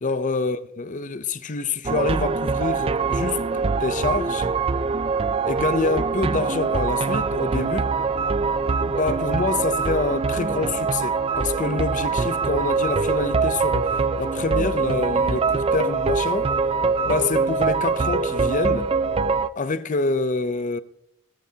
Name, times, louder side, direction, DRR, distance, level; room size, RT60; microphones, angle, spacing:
voice 1, 0.0-4.5 5.5-7.9 8.9-16.5 17.0-18.9 19.6-20.8, left 3 dB, 40° left, 0.6 m, -26 dB
sound 1, 1.8-19.5, right 4 dB, 25° right, 0.4 m, -23 dB
16.0 x 13.0 x 2.8 m
head